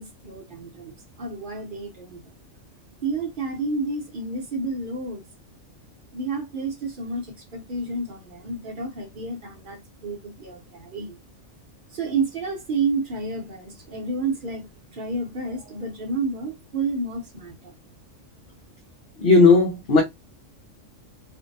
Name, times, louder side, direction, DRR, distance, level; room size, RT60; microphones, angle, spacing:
voice 1, 0.0-2.3 3.0-5.2 6.1-11.2 11.9-14.7 14.9-17.7, right 3 dB, 50° right, 0.8 m, -30 dB
voice 2, 19.2-20.0, left 4 dB, 60° left, 0.8 m, -15 dB
2.5 x 2.1 x 2.6 m
omnidirectional pair, 1.3 m